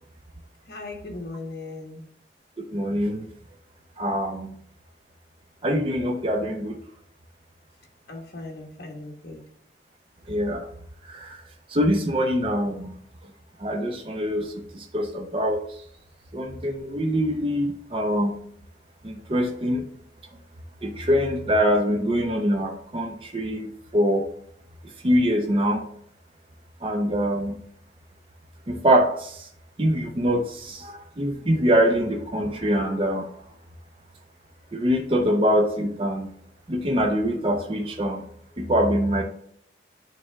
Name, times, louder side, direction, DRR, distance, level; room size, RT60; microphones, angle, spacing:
voice 1, 0.7-2.0 8.1-9.4, left 2 dB, 55° left, 1 dB, 1.3 m, -38 dB
voice 2, 2.7-3.2 4.0-4.5 5.6-6.8 10.3-10.7 11.1-11.4 11.7-13.0 13.6-15.6 16.3-18.4 19.0-19.8 20.8-24.3 25.0-25.8 26.8-27.6 28.7-29.4 29.8-33.3 34.7-36.3 36.7-38.2 38.6-39.2, equal, 30° right, 2 dB, 0.6 m, -24 dB
8.7 x 3.3 x 3.4 m, 0.66 s
head